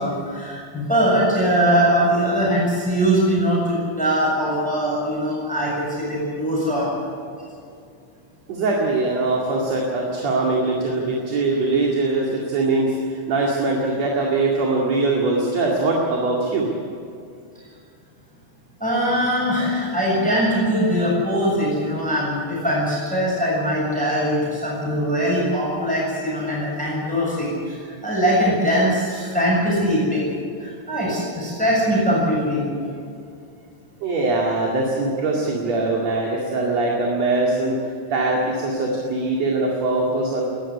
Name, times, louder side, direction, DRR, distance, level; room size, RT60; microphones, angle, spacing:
voice 1, 0.0-6.9 18.8-30.2 30.6-32.7, equal, ahead, -4 dB, 6.7 m, -21 dB
voice 2, 8.5-16.7 34.0-37.7 38.1-40.4, right 2 dB, 45° right, -2 dB, 3.1 m, -22 dB
20.5 x 14.0 x 9.9 m, 2.3 s
omnidirectional pair, 4.7 m